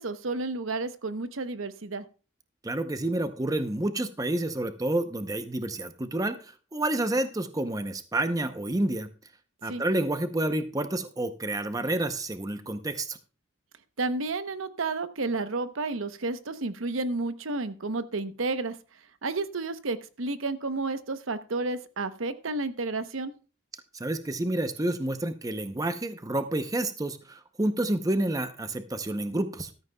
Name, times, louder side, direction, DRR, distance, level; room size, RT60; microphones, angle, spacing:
voice 1, 0.0-2.0 9.7-9.8 14.0-18.8 19.2-23.3, right 3 dB, 80° right, 11 dB, 0.9 m, -31 dB
voice 2, 2.6-9.1 9.6-13.2 23.9-29.7, right 1 dB, 15° right, 9 dB, 0.6 m, -29 dB
14.5 x 13.0 x 2.3 m, 0.34 s
head